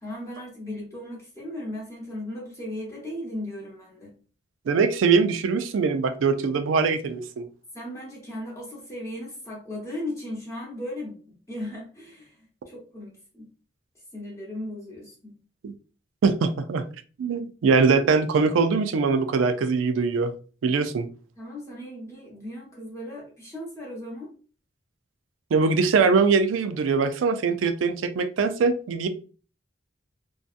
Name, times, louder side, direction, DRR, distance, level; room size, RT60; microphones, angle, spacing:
voice 1, 0.0-4.1 7.7-11.2 11.5-12.4 12.7-13.5 14.1-15.3 21.4-24.3, left 1 dB, 15° left, -4 dB, 0.7 m, -36 dB
voice 2, 4.7-7.5 15.6-15.7 16.2-16.8 17.2-20.3 20.6-21.1 25.5-29.1, right 5 dB, 80° right, 9 dB, 0.3 m, -22 dB
2.6 x 2.3 x 2.4 m, 0.38 s
head